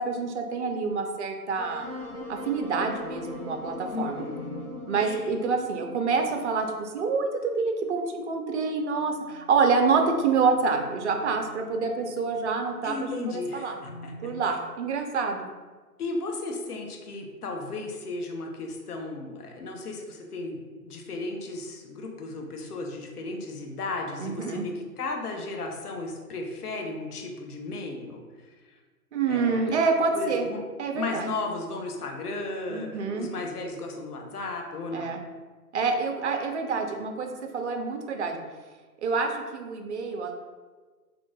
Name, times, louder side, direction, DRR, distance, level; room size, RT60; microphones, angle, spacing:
voice 1, 0.0-1.9 2.3-4.2 4.9-12.9 13.3-13.8 14.2-15.5 24.2-24.7 29.1-30.5 30.8-31.3 32.7-33.3 34.9-35.2 35.7-38.4 39.0-40.3, right 4 dB, 50° right, 4 dB, 0.5 m, -27 dB
Wind instrument woodwind instrument, 1.6-6.7, left 2 dB, 15° left, 1.4 m, -40 dB
voice 2, 3.9-5.3 12.8-14.3 16.0-28.2 29.3-29.9 30.1-30.6 30.9-35.1, left 3 dB, 75° left, 2 dB, 0.8 m, -35 dB
sound 1, 4.2-4.7 6.0-6.5 8.7-12.9 13.6-14.3, left 3 dB, 5° right, 0.6 m, -48 dB
3.0 x 2.5 x 3.7 m, 1.4 s
figure-of-eight pair, 130°, 47 cm